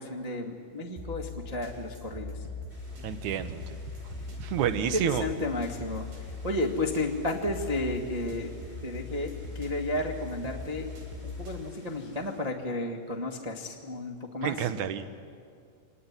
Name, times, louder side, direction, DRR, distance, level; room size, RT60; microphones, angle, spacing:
voice 1, 0.0-2.5 4.8-10.9 11.2-14.7, left 1 dB, 35° right, -1 dB, 0.5 m, -33 dB
sound 1, 1.0-11.6, left 4 dB, 80° right, 5.6 m, -41 dB
sound 2, 2.7-12.4, left 1 dB, 15° right, 4.8 m, -53 dB
voice 2, 3.0-3.6 4.4-5.2 14.4-15.0, right 9 dB, 65° right, 10 dB, 2.2 m, -29 dB
25.5 x 19.0 x 9.7 m, 2.2 s
omnidirectional pair, 4.1 m